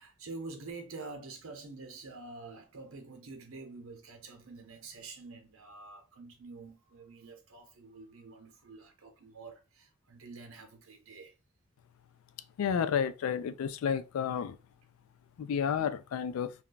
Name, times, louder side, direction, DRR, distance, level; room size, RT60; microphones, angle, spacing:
voice 1, 0.0-11.3, right 3 dB, 70° right, 0.8 m, -47 dB
voice 2, 12.6-14.6 15.4-16.5, left 7 dB, 70° left, 0.3 m, -31 dB
2.4 x 2.2 x 3.8 m
head